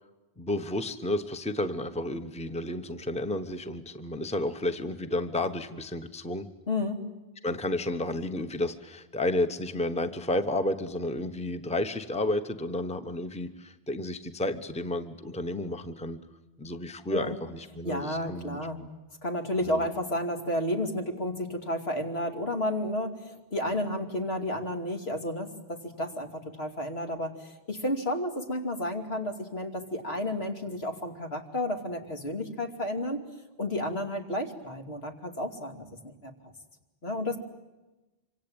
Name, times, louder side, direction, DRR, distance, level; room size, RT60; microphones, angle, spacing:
voice 1, 0.4-6.5 7.4-16.2 16.6-18.9 19.6-19.8, left 1 dB, 5° left, 9 dB, 1.0 m, -31 dB
voice 2, 6.7-7.0 17.1-17.4 17.8-18.8 19.2-33.2 33.6-36.3 37.0-37.4, left 1 dB, 70° left, 3 dB, 3.0 m, -32 dB
26.0 x 25.5 x 8.8 m, 1.1 s
omnidirectional pair, 1.1 m